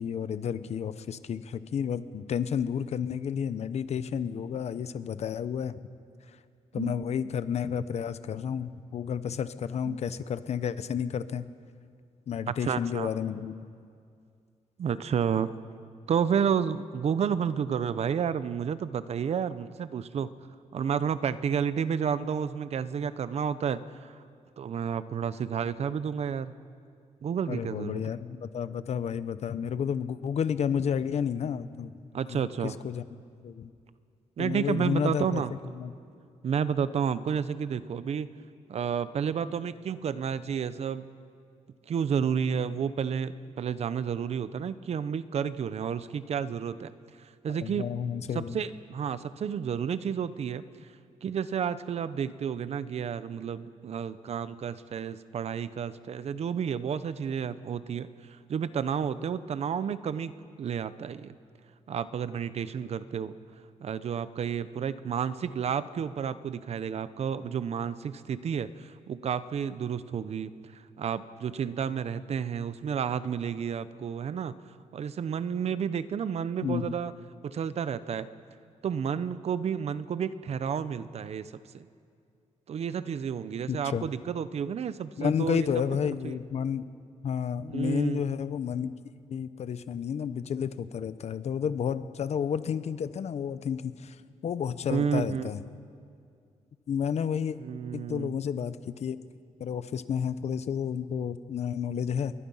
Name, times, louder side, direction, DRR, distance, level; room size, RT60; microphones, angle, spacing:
voice 1, 0.0-5.8 6.7-11.5 12.3-13.6 27.5-33.0 33.4-33.7 34.4-35.4 35.7-35.9 47.5-48.6 76.6-76.9 83.7-84.1 85.2-86.8 87.2-88.9 89.3-94.2 94.4-95.6 96.9-97.6 97.9-99.2 99.6-102.3, left 7 dB, 60° left, 13 dB, 0.9 m, -31 dB
voice 2, 12.5-13.1 14.8-15.6 16.1-20.3 20.7-24.2 24.6-26.5 27.2-28.1 32.1-32.7 34.4-35.5 36.4-38.3 38.7-41.1 41.9-46.9 47.2-47.9 48.3-50.6 51.2-58.1 58.5-60.3 60.6-61.3 61.9-63.3 63.8-74.5 74.9-77.1 77.4-78.3 78.8-81.9 82.7-85.7 86.2-86.4 87.7-88.2 94.9-95.5 97.6-98.4, right 7 dB, 55° right, 14 dB, 0.8 m, -31 dB
28.0 x 22.5 x 5.7 m, 2.3 s
wide cardioid pair, 135°, 13 cm